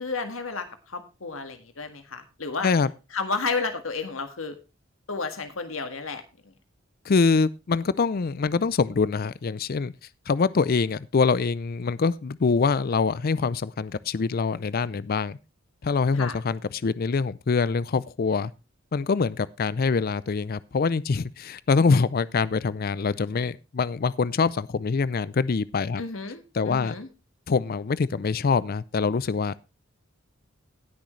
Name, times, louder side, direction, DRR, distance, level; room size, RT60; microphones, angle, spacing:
voice 1, 0.0-2.7 3.1-4.6 5.1-6.2 16.1-16.4 26.0-27.1, left 4 dB, 85° left, 1.7 m, -32 dB
voice 2, 7.1-9.9 10.3-15.4 15.8-18.5 18.9-26.0 26.5-26.9 27.5-29.5, left 4 dB, 45° left, 0.4 m, -24 dB
18.5 x 6.4 x 3.2 m
head